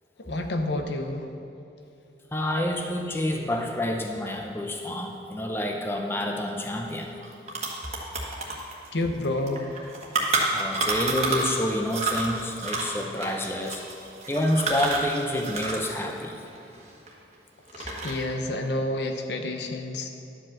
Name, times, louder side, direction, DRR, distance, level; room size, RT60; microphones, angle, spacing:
voice 1, 0.2-1.3 8.9-9.6 17.7-20.1, left 1 dB, 75° left, 5 dB, 0.8 m, -29 dB
voice 2, 2.3-7.1 10.5-16.4, left 1 dB, 15° left, 2 dB, 0.6 m, -28 dB
sound 1, 6.9-7.0 7.2-11.6 11.9-17.3 17.7-18.3, right 3 dB, 35° right, 1.4 m, -29 dB
11.5 x 5.2 x 7.2 m, 2.7 s
head